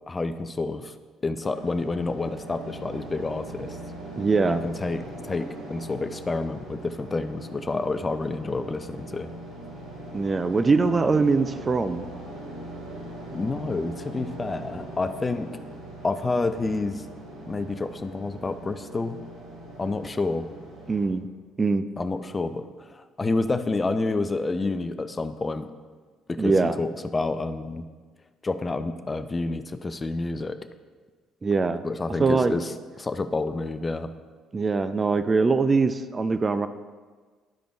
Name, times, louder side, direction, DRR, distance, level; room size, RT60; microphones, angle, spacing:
voice 1, 0.1-0.9 1.2-3.8 4.5-9.3 13.3-15.6 16.0-17.1 17.5-19.2 19.8-20.4 22.0-25.7 26.3-27.9 28.4-30.6 31.8-32.7 33.0-34.1, left 3 dB, 25° left, 10 dB, 0.5 m, -29 dB
sound 1, 1.4-21.0, right 1 dB, 70° right, 2.2 m, -41 dB
voice 2, 4.2-4.6 10.1-12.0 20.9-21.3 21.6-21.8 26.4-26.8 31.4-31.8 32.2-32.6 34.5-36.7, right 4 dB, 30° right, 10 dB, 0.4 m, -22 dB
11.5 x 5.1 x 3.4 m, 1.4 s
figure-of-eight pair, 50°, 0 cm